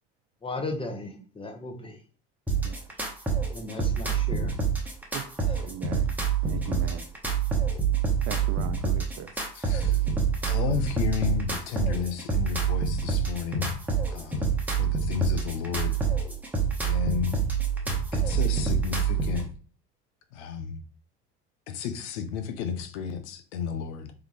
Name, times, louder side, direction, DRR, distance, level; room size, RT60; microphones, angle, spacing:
voice 1, 0.4-2.0 3.5-4.5 5.5-5.6, left 2 dB, 15° left, 1.1 m, -36 dB
sound 1, 2.5-19.5, right 6 dB, 5° right, 1.2 m, -27 dB
voice 2, 5.1-6.1 6.4-7.1 8.3-9.3 10.9-11.0, right 11 dB, 45° right, 0.5 m, -39 dB
voice 3, 9.5-10.0 10.5-13.8 14.1-14.5 14.8-16.0 16.8-17.4 18.1-19.5 20.3-20.8 21.7-24.1, left 7 dB, 75° left, 0.7 m, -32 dB
3.7 x 3.4 x 3.1 m
hypercardioid pair, 70°, 34 cm